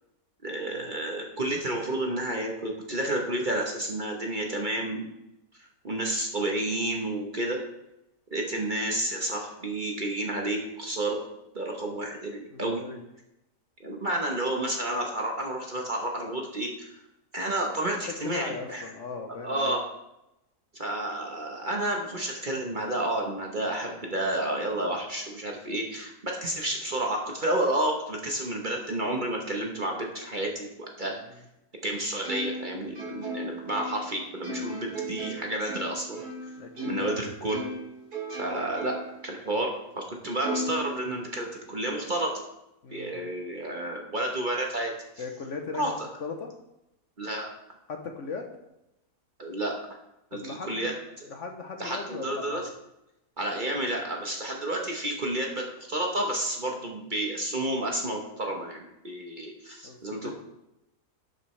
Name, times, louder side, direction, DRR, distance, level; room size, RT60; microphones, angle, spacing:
voice 1, 0.4-5.1 5.8-7.6 8.3-11.2 11.5-12.8 13.8-16.9 17.3-18.8 19.4-19.8 20.7-31.2 31.8-36.2 36.8-37.6 38.4-38.9 39.2-42.3 42.9-44.9 45.8-46.1 47.2-47.5 49.4-49.7 50.3-51.3 51.8-52.6 53.4-60.3, right 1 dB, 35° right, 0 dB, 1.0 m, -30 dB
voice 2, 12.5-13.0 18.2-19.8 36.6-37.2 42.8-43.3 45.2-45.8 46.2-46.5 47.9-48.4 50.3-50.9 51.3-52.6 59.8-60.3, left 4 dB, 55° left, 4 dB, 1.0 m, -38 dB
Plucked string instrument, 32.2-37.2 37.5-39.2 39.6-39.7 40.4-41.6, right 1 dB, 75° right, 3.1 m, -36 dB
11.0 x 6.7 x 3.2 m, 0.88 s
omnidirectional pair, 1.7 m